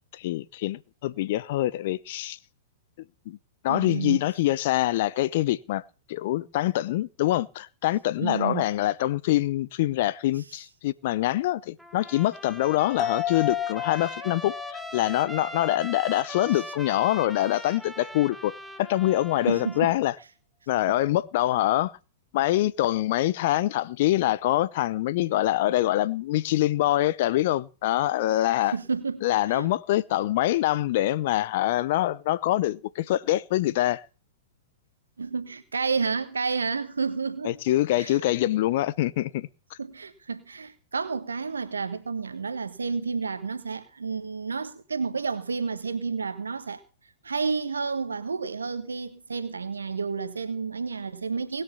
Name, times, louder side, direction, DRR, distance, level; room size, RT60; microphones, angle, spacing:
voice 1, 0.1-2.4 3.3-3.4 3.6-5.8 6.1-20.1 20.7-21.9 22.3-28.7 29.2-34.0 37.4-39.5, left 15 dB, 55° left, 0.7 m, -25 dB
voice 2, 3.7-4.2 8.2-8.7 19.5-19.9 20.9-21.0 28.6-29.7 35.2-38.2 39.8-46.8 47.2-51.6, right 5 dB, 85° right, 1.4 m, -30 dB
Trumpet, 11.8-20.0, equal, ahead, 1.2 m, -41 dB
sound 1, 13.0-16.7 17.0-17.1, left 9 dB, 20° left, 1.4 m, -33 dB
19.5 x 6.7 x 7.0 m
hypercardioid pair, 110°, 0 cm